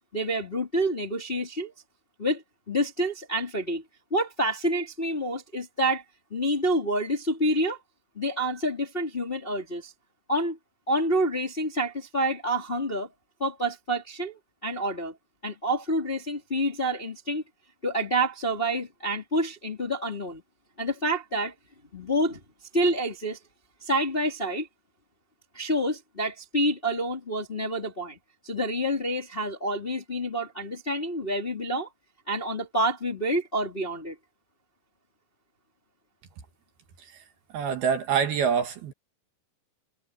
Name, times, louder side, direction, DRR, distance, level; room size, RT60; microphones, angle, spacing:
voice 1, 0.1-1.7 2.2-2.4 2.7-3.8 4.1-6.0 6.3-7.8 8.2-9.9 10.3-10.6 10.9-13.1 13.4-15.1 15.4-17.4 17.8-20.4 20.8-21.5 21.9-22.4 22.7-23.4 23.8-24.7 25.5-28.2 28.4-31.9 32.3-34.2, right 1 dB, 20° left, 1.8 m, -28 dB
voice 2, 37.5-38.9, right 7 dB, 65° right, 3.1 m, -26 dB
omnidirectional pair, 5.5 m